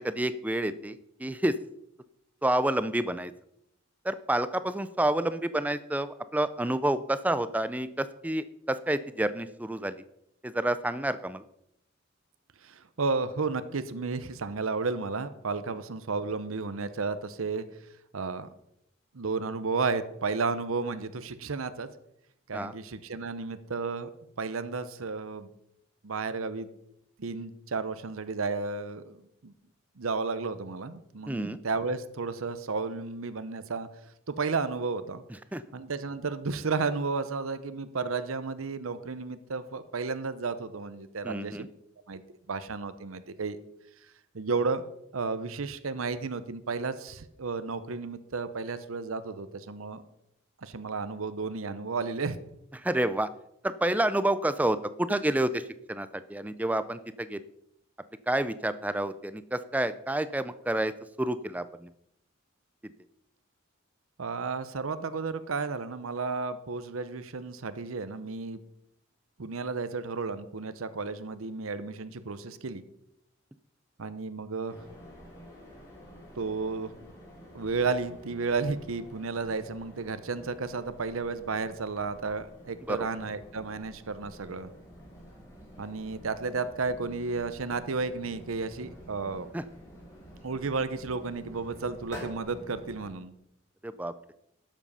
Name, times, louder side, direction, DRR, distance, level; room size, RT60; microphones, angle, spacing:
voice 1, 0.0-1.6 2.4-3.3 4.0-10.0 10.4-11.4 22.5-22.7 31.3-31.6 35.5-35.6 41.2-41.7 52.7-53.3 53.6-57.4 58.3-60.9 61.2-61.9 82.9-83.1 89.5-89.6 93.8-94.1, right 1 dB, 5° right, 13 dB, 0.4 m, -29 dB
voice 2, 12.6-17.6 18.1-18.5 19.1-21.9 22.5-24.1 24.4-25.5 26.0-26.7 27.2-29.5 30.0-33.9 34.3-35.2 35.7-41.7 42.1-42.2 42.5-43.6 44.3-44.8 45.1-50.0 50.6-52.4 64.2-68.6 69.4-72.8 74.0-74.8 76.4-76.9 77.5-84.7 85.8-89.5 90.4-93.3, right 4 dB, 90° right, 12 dB, 0.8 m, -32 dB
sound 1, 74.7-93.1, equal, 15° left, 4.2 m, -49 dB
12.0 x 7.5 x 5.5 m, 0.79 s
head